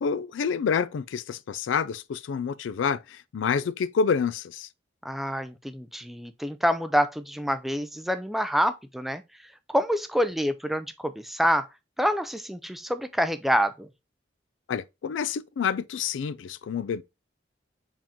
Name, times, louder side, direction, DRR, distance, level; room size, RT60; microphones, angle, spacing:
voice 1, 0.0-4.7 14.7-17.0, left 6 dB, 90° left, 0.3 m, -28 dB
voice 2, 5.0-9.2 9.7-11.7 12.0-13.9, equal, ahead, 0.3 m, -27 dB
4.9 x 3.6 x 2.8 m
head